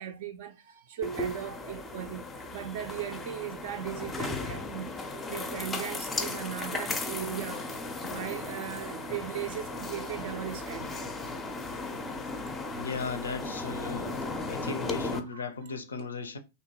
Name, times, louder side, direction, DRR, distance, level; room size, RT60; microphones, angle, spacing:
voice 1, 0.0-11.1 15.6-15.7 16.0-16.1, right 10 dB, 55° right, 0.3 m, -38 dB
sound 1, 1.0-15.2, left 2 dB, 15° left, 0.4 m, -36 dB
voice 2, 12.7-14.1 14.5-16.4, left 4 dB, 75° left, 0.4 m, -36 dB
2.7 x 2.1 x 2.8 m
figure-of-eight pair, 95°, 0 cm